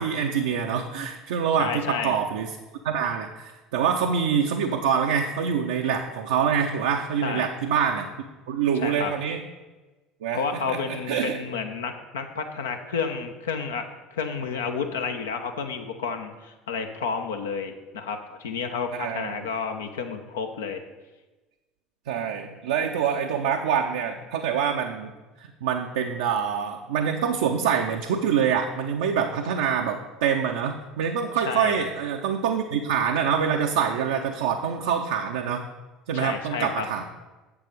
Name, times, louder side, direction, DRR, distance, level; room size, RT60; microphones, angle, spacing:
voice 1, 0.0-2.5 2.8-8.1 8.5-9.4 10.2-11.4 18.9-19.5 22.1-25.1 25.4-35.7 36.1-37.0, right 7 dB, 65° right, 2 dB, 0.5 m, -25 dB
voice 2, 1.6-2.2 7.2-7.5 8.8-9.1 10.3-20.8 31.4-31.9 36.1-36.9, left 5 dB, 70° left, 6 dB, 0.7 m, -31 dB
7.5 x 6.9 x 5.2 m, 1.2 s
figure-of-eight pair, 65°, 0 cm